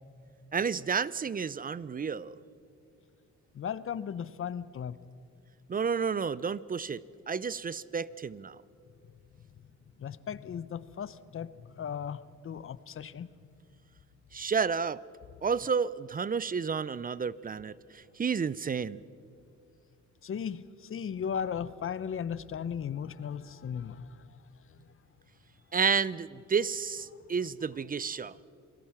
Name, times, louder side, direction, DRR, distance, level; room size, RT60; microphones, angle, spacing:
voice 1, 0.5-2.4 5.7-8.6 14.3-15.0 15.4-19.0 25.7-28.4, right 6 dB, 30° right, 19 dB, 0.6 m, -31 dB
voice 2, 3.5-5.0 10.0-12.2 12.4-13.3 20.2-24.3 24.7-24.8, left 8 dB, 45° left, 16 dB, 0.8 m, -36 dB
27.5 x 18.5 x 5.9 m, 2.4 s
cardioid pair, 90°, 30 cm